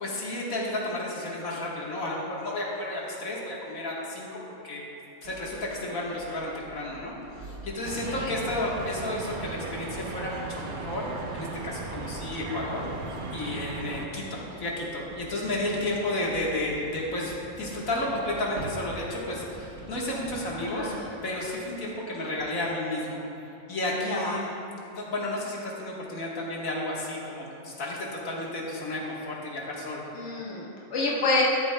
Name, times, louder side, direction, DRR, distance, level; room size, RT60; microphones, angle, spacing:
voice 1, 0.0-4.4 4.6-4.8 5.2-7.1 7.4-11.0 11.3-12.8 13.3-20.9 21.2-23.2 23.7-24.5 24.9-30.0, left 1 dB, 80° left, -4 dB, 1.9 m, -32 dB
sound 1, 5.2-21.7, right 2 dB, 65° right, 1.4 m, -45 dB
sound 2, 7.8-14.1, right 3 dB, 50° right, 0.7 m, -37 dB
voice 2, 7.9-8.3 20.6-21.0 24.0-24.5 30.1-31.4, left 3 dB, 55° left, -4 dB, 1.4 m, -29 dB
13.0 x 11.5 x 2.2 m, 2.9 s
omnidirectional pair, 1.4 m